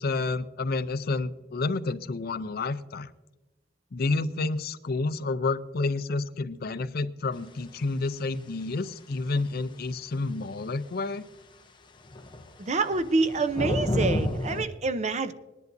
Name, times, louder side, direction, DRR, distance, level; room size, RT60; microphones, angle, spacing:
voice 1, 0.0-3.1 3.9-11.2, left 3 dB, 55° left, 14 dB, 0.5 m, -29 dB
sound 1, 12.1-14.6, left 1 dB, 25° left, 0.8 m, -29 dB
voice 2, 12.6-15.3, right 3 dB, 35° right, 12 dB, 0.6 m, -27 dB
20.5 x 11.0 x 2.6 m, 1.1 s
head